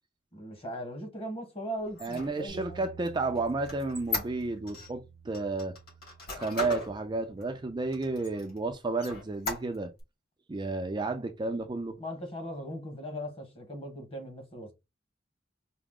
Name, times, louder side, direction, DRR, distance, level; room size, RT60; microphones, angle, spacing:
voice 1, 0.3-2.8 12.0-14.7, equal, 30° left, 1.3 m, -39 dB
Squeak, 1.9-4.9 5.3-6.9 7.4-7.5 7.9-8.6 9.0-10.0, left 3 dB, 55° left, 2.4 m, -37 dB
voice 2, 2.0-5.8 6.3-9.9 10.5-12.0, right 3 dB, 25° right, 0.4 m, -32 dB
Bass guitar, 2.5-8.7, right 5 dB, 85° left, 1.6 m, -52 dB
4.7 x 2.0 x 3.6 m
head